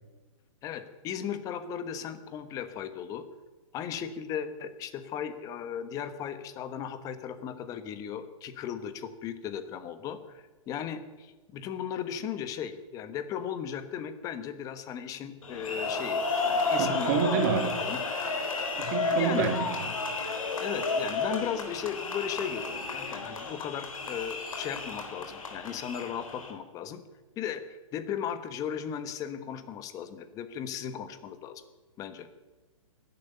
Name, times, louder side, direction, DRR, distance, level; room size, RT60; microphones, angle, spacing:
voice 1, 0.6-3.2 3.7-17.4 17.8-18.0 19.1-19.5 20.6-27.0 27.4-31.6 32.0-32.3, left 8 dB, 20° left, 11 dB, 1.2 m, -36 dB
sound 1, 15.4-26.5, left 3 dB, 80° left, 3.5 m, -32 dB
voice 2, 16.7-17.8 18.8-19.9, right 7 dB, 35° right, 5 dB, 2.3 m, -29 dB
12.5 x 11.0 x 9.9 m, 1.2 s
hypercardioid pair, 150°, 17 cm